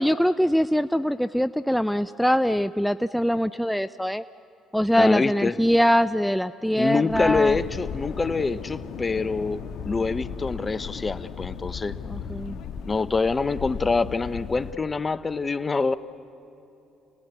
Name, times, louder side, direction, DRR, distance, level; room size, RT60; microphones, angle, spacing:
voice 1, 0.0-4.2 4.7-7.6 12.1-12.6, equal, ahead, 13 dB, 0.5 m, -23 dB
voice 2, 4.9-5.5 6.8-11.9 12.9-15.9, left 4 dB, 30° left, 15 dB, 0.9 m, -25 dB
sound 1, 7.1-14.7, left 7 dB, 65° left, 1.5 m, -36 dB
29.5 x 19.5 x 8.2 m, 2.9 s
supercardioid pair, 65°, 0 cm